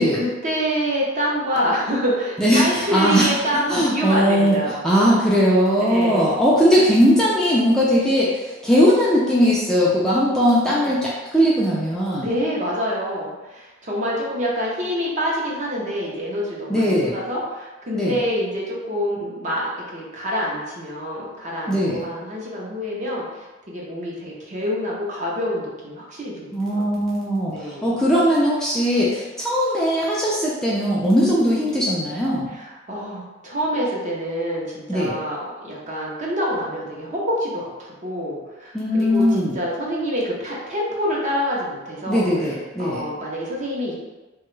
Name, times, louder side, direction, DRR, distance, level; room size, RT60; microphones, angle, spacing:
voice 1, 0.2-4.9 5.9-6.4 10.6-10.9 12.2-26.6 27.5-27.9 32.5-42.2 42.8-43.9, equal, 35° right, -4 dB, 0.7 m, -26 dB
voice 2, 2.4-3.3 3.7-4.6 4.8-12.3 16.7-17.1 17.9-18.2 21.7-22.1 26.5-32.5 34.9-35.2 38.7-39.5 42.1-43.0, equal, 5° left, -7 dB, 0.4 m, -19 dB
2.9 x 2.3 x 3.1 m, 1.2 s
head